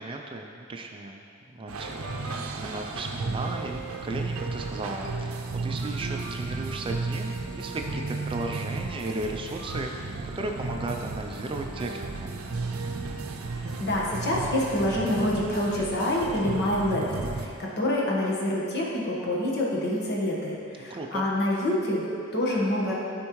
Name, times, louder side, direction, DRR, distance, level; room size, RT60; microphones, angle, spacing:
voice 1, 0.0-12.3 20.9-21.3, right 2 dB, 25° right, 3 dB, 0.4 m, -35 dB
sound 1, 1.7-17.5, right 3 dB, 75° right, 0.6 m, -34 dB
voice 2, 13.8-22.9, left 1 dB, 50° left, -4 dB, 1.3 m, -27 dB
12.0 x 4.4 x 3.1 m, 2.5 s
head